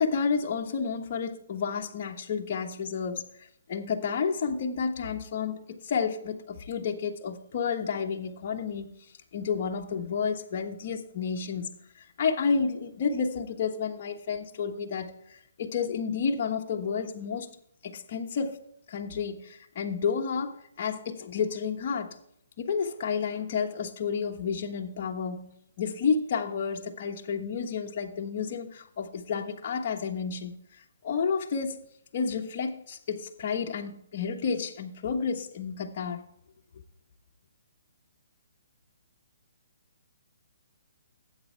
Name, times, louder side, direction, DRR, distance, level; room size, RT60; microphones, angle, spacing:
voice 1, 0.0-3.3 3.7-8.9 9.3-11.7 12.2-15.1 15.6-17.5 17.8-18.6 18.9-22.1 22.6-30.6 31.0-31.8 32.1-36.3, left 6 dB, 45° left, 1.3 m, -30 dB
12.5 x 8.4 x 3.4 m
hypercardioid pair, 150°, 0 cm